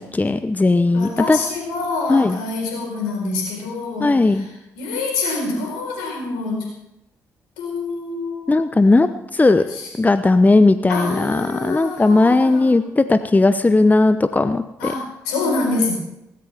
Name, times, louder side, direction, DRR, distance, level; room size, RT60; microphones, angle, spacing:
voice 1, 0.0-1.4 2.1-2.4 4.0-4.4 8.5-9.6 10.0-14.9, left 2 dB, 20° left, 11 dB, 0.9 m, -17 dB
voice 2, 0.9-6.7 7.6-8.7 9.6-9.9 10.9-12.7 14.8-15.9, left 3 dB, 75° left, 1 dB, 4.6 m, -26 dB
18.0 x 16.0 x 3.6 m, 0.87 s
figure-of-eight pair, 40°, 8 cm